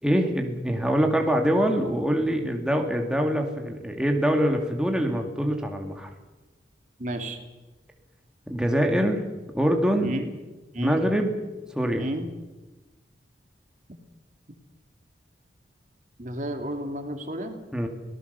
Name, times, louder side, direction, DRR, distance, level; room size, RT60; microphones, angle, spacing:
voice 1, 0.0-6.1 8.5-9.2 9.5-10.2 10.8-11.4 11.7-12.1 17.7-17.9, equal, 5° right, 2 dB, 2.2 m, -24 dB
voice 2, 7.0-7.4 10.0-10.3 10.7-11.0 12.0-12.3 16.2-17.6, right 1 dB, 45° right, 5 dB, 2.6 m, -31 dB
24.5 x 18.5 x 6.8 m, 1.1 s
head